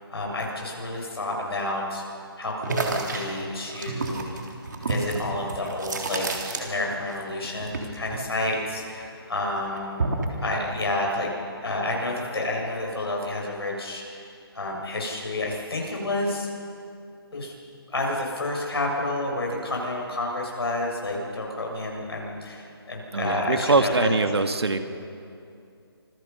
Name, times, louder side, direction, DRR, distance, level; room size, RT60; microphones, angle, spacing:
voice 1, 0.1-2.0 2.4-4.2 4.9-6.2 6.6-10.0 10.4-11.3 11.6-14.3 14.5-16.5 17.3-17.5 17.9-24.1, left 2 dB, 70° left, -1 dB, 7.2 m, -29 dB
sound 1, 2.6-7.2 7.4-9.1 9.4-10.4, right 3 dB, 45° right, 3.5 m, -30 dB
voice 2, 23.1-24.8, right 3 dB, 85° right, 7 dB, 2.0 m, -22 dB
27.0 x 22.5 x 5.7 m, 2.5 s
hypercardioid pair, 175°, 13 cm